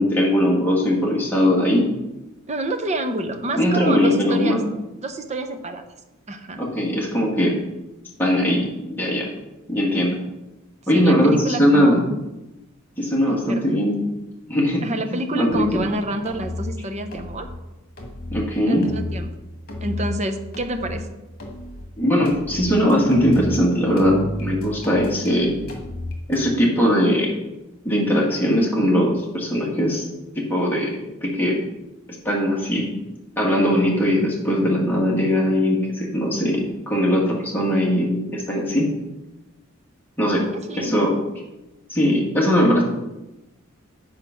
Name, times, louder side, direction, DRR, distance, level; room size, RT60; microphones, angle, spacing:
voice 1, 0.0-1.9 3.6-4.6 6.6-7.5 8.2-8.7 9.0-9.3 9.7-10.2 10.9-12.0 13.0-14.0 14.5-14.8 15.1-15.8 18.3-18.9 22.0-25.6 26.3-27.3 27.8-30.0 30.4-30.9 31.2-31.6 32.2-32.9 33.4-38.9 40.2-40.5 40.8-41.1 41.9-42.8, equal, 10° left, -4 dB, 1.8 m, -20 dB
voice 2, 2.5-4.6 5.0-5.8 6.3-6.6 10.9-12.0 13.3-13.8 14.8-17.5 18.7-19.3 19.8-21.1 40.5-41.1, right 1 dB, 35° right, 6 dB, 0.8 m, -28 dB
sound 1, 15.5-15.9 16.3-16.7 17.1-17.6 18.0-18.4 18.8-19.3 19.7-20.2 20.5-21.0 21.4-21.9 22.3-23.6 24.0-26.4, left 1 dB, 50° left, 1.7 m, -33 dB
8.2 x 4.8 x 5.8 m, 0.99 s
head